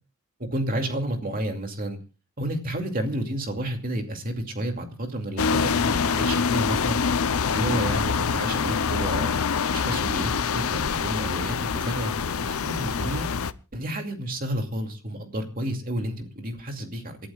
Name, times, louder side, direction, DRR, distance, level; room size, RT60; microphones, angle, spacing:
voice 1, 0.4-2.0 2.4-7.0 7.5-9.4 9.7-12.1 12.5-13.3 13.7-17.2, right 1 dB, 40° right, 4 dB, 2.5 m, -30 dB
sound 1, 5.4-13.5, left 6 dB, 80° left, 0.6 m, -25 dB
28.0 x 11.5 x 2.4 m, 0.32 s
head